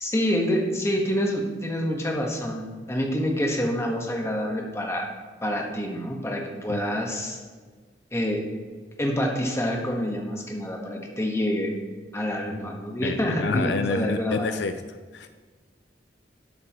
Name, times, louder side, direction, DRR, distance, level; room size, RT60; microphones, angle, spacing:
voice 1, 0.0-5.1 5.4-7.4 8.1-8.4 9.0-11.7 12.1-14.6, equal, 15° left, 0 dB, 1.4 m, -27 dB
voice 2, 13.0-14.7 15.1-15.3, left 4 dB, 70° left, 9 dB, 0.5 m, -28 dB
12.0 x 7.9 x 3.1 m, 1.4 s
head